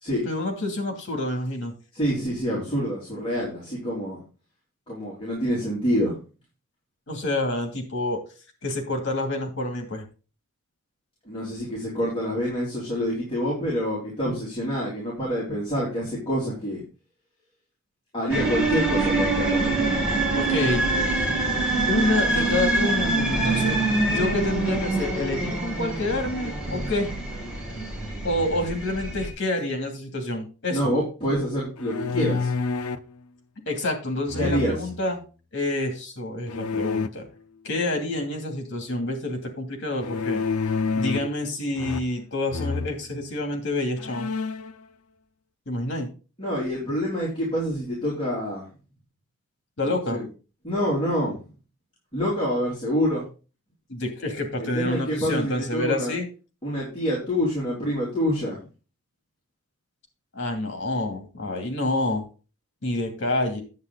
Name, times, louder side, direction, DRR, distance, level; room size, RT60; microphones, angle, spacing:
voice 1, 0.2-1.7 7.1-8.2 8.6-10.0 20.3-20.9 21.9-27.1 28.2-30.9 33.7-35.2 35.5-37.2 37.6-40.4 41.0-44.3 45.7-46.1 49.8-50.2 53.9-56.3 60.3-62.3 62.8-63.6, left 2 dB, 55° left, 3 dB, 2.7 m, -28 dB
voice 2, 1.9-4.2 4.9-6.2 11.3-16.8 18.1-19.8 30.7-32.5 34.4-34.9 46.4-48.7 49.8-50.3 50.6-51.3 52.1-53.2 54.6-56.1 56.6-58.6, equal, 25° left, -6 dB, 3.8 m, -27 dB
Incoming Train using brakes, 18.3-29.3, right 2 dB, 5° right, 3.1 m, -25 dB
Bowed string instrument, 23.4-26.2, right 5 dB, 35° right, 5.9 m, -37 dB
sound 1, 31.8-33.1 34.3-35.0 36.5-37.1 40.0-41.4 41.8-42.2 42.5-42.9 43.5-43.6 44.0-44.7, left 4 dB, 85° left, 0.7 m, -28 dB
9.6 x 8.2 x 4.0 m, 0.34 s
head